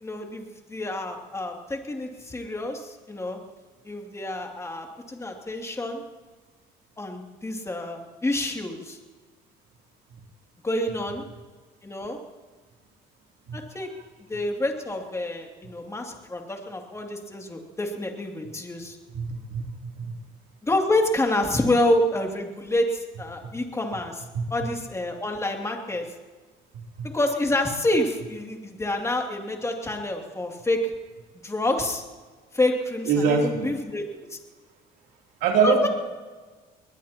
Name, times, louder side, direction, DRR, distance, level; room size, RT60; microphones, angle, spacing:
voice 1, 0.0-3.4 3.8-6.0 7.0-9.0 10.6-11.2 11.8-12.2 13.5-13.9 14.3-19.0 20.6-24.2 24.5-26.0 27.1-30.8 31.4-32.0 32.5-34.0 34.3-34.4 35.6-35.9, left 1 dB, 15° left, 1 dB, 2.7 m, -28 dB
voice 2, 19.1-20.1 24.3-24.5 27.0-27.1 33.1-33.7 35.4-35.9, right 5 dB, 85° right, 1 dB, 3.1 m, -24 dB
21.5 x 20.5 x 3.0 m, 1.4 s
cardioid pair, 110°, 17 cm